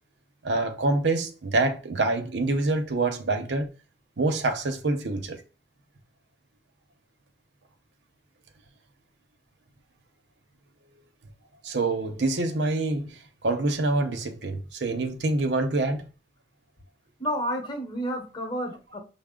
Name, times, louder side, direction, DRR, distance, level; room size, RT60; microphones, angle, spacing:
voice 1, 0.4-3.7 4.2-5.4 11.6-16.1, right 2 dB, 70° right, 0.7 m, -26 dB
voice 2, 17.2-19.0, equal, 25° left, 1.0 m, -30 dB
5.8 x 2.0 x 3.6 m
head